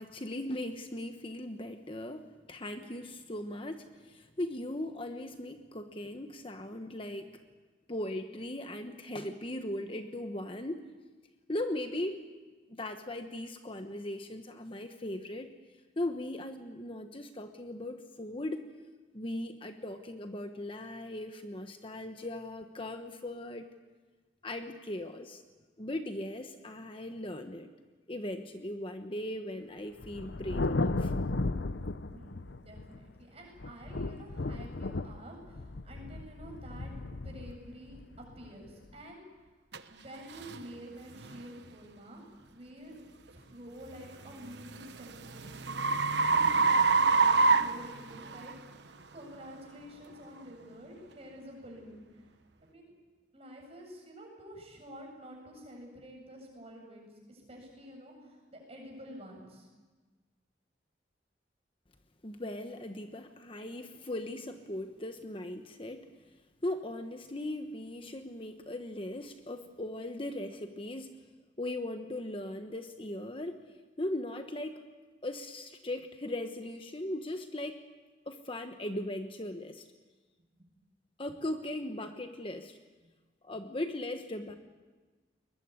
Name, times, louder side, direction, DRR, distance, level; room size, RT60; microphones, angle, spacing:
voice 1, 0.0-7.4 7.9-10.9 11.5-12.2 12.7-15.5 16.0-18.6 19.1-23.7 24.4-25.4 25.8-27.7 28.1-31.1 62.2-66.2 66.6-71.2 71.6-73.6 74.0-74.8 75.2-77.8 78.3-79.9 81.2-82.8 83.4-84.6, left 1 dB, 30° left, 6 dB, 1.1 m, -38 dB
Thunder, 30.0-33.1 33.6-38.9, left 2 dB, 70° left, 0.8 m, -35 dB
voice 2, 32.1-39.4 39.9-43.0 43.3-52.9 53.3-59.7, equal, 35° right, 0 dB, 8.0 m, -49 dB
sound 1, 39.7-39.8 40.4-40.6 41.2-41.4 44.0-48.5, right 4 dB, 65° right, 1.1 m, -26 dB
22.0 x 21.5 x 9.6 m, 1.3 s
head